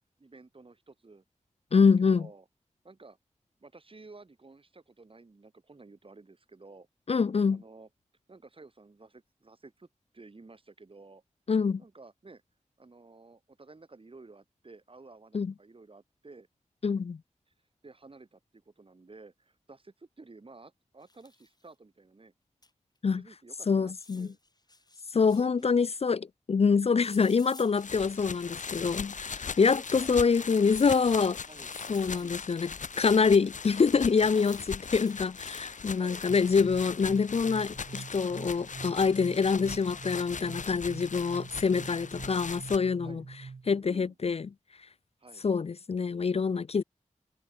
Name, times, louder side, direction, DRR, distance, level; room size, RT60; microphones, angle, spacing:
voice 1, 0.2-1.2 2.0-2.5 2.8-3.2 3.6-6.9 7.5-7.9 8.3-9.9 10.1-11.2 11.8-12.4 12.8-16.5 17.8-22.3 23.1-24.4 25.3-25.9 29.6-30.3 31.5-31.7 32.0-32.4 32.9-33.7 36.0-36.2 43.0-43.2 43.7-44.2 45.2-45.4, right 3 dB, 45° right, 5.4 m, -53 dB
voice 2, 1.7-2.2 7.1-7.6 11.5-11.8 15.3-15.5 16.8-17.2 23.0-23.2 23.7-24.3 25.1-31.4 31.9-32.7 33.0-43.2 43.7-44.5 45.4-46.8, left 5 dB, 50° left, 0.5 m, -26 dB
sound 1, 21.0-21.6 22.6-22.7 23.0-23.1 23.9-25.7 27.0-28.6 29.3-29.4 30.7-32.7 33.9-35.2 35.8-36.1, left 2 dB, 30° left, 5.0 m, -54 dB
sound 2, 27.8-42.8, left 5 dB, 70° left, 1.3 m, -40 dB
sound 3, 36.3-43.8, right 4 dB, 70° right, 5.3 m, -45 dB
wide cardioid pair, 90°, 13 cm